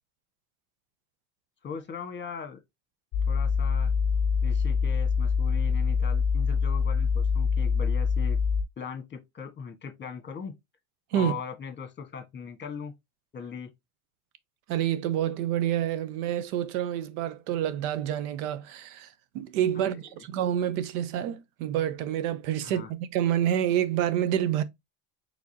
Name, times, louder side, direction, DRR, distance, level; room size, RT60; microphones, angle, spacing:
voice 1, 1.6-2.6 3.3-3.9 4.4-8.4 8.8-10.5 11.1-12.9 13.3-13.7 19.7-20.2 22.6-22.9, left 6 dB, 25° left, 1.4 m, -39 dB
sound 1, 3.1-8.6, left 5 dB, 40° left, 0.8 m, -25 dB
voice 2, 14.7-24.6, right 10 dB, 75° right, 0.8 m, -28 dB
4.7 x 3.5 x 2.7 m
supercardioid pair, 105°, 44 cm